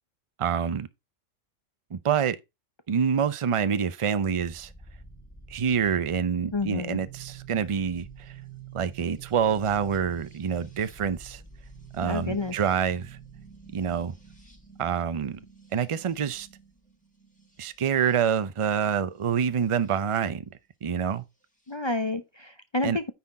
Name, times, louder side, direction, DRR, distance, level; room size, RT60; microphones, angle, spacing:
voice 1, 0.4-0.9 1.9-2.4 2.9-4.7 5.5-8.3 8.7-11.4 11.9-13.2 13.7-14.1 14.8-15.4 15.7-16.5 17.6-20.4 20.8-21.2 22.8-23.0, right 7 dB, 40° right, 0.5 m, -26 dB
sound 1, 4.2-20.0 21.1-21.8, right 6 dB, 5° left, 3.3 m, -49 dB
voice 2, 6.5-7.0 12.0-12.5 21.7-23.1, left 3 dB, 35° left, 0.5 m, -30 dB
9.4 x 4.4 x 4.8 m
omnidirectional pair, 1.3 m